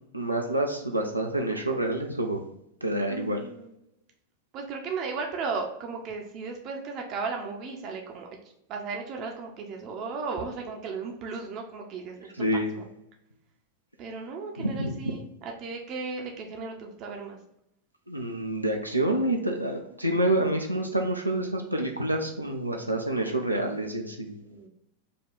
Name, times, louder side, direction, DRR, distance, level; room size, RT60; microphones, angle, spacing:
voice 1, 0.1-2.4 2.8-3.4 12.4-12.7 14.6-14.9 18.1-24.4, right 1 dB, 90° right, 2 dB, 0.4 m, -28 dB
voice 2, 3.1-3.7 4.5-8.3 8.7-12.3 12.7-12.9 14.0-17.4 24.4-24.7, right 4 dB, 35° right, 1 dB, 0.6 m, -35 dB
5.0 x 2.3 x 3.8 m, 0.80 s
figure-of-eight pair, 90°, 0 cm